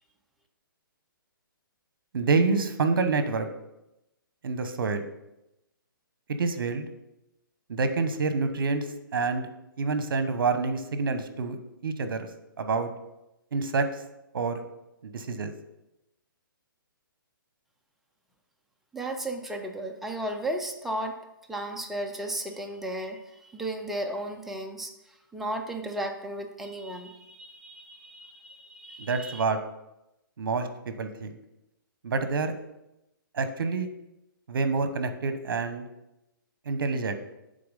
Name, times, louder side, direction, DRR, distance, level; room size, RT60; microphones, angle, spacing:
voice 1, 2.1-3.5 4.4-5.0 6.4-6.9 7.7-8.8 9.1-9.5 9.8-11.6 11.8-12.3 12.6-12.9 13.5-13.9 14.3-14.6 15.0-15.5 29.0-29.6 30.4-30.7 31.0-31.3 32.0-32.5 33.3-33.9 34.5-35.8 36.7-37.1, right 4 dB, 70° right, 9 dB, 0.9 m, -27 dB
voice 2, 18.9-21.2 21.5-23.2 23.5-24.9 25.3-29.4, right 1 dB, ahead, 2 dB, 0.4 m, -34 dB
6.7 x 3.9 x 5.3 m, 0.90 s
hypercardioid pair, 150°, 12 cm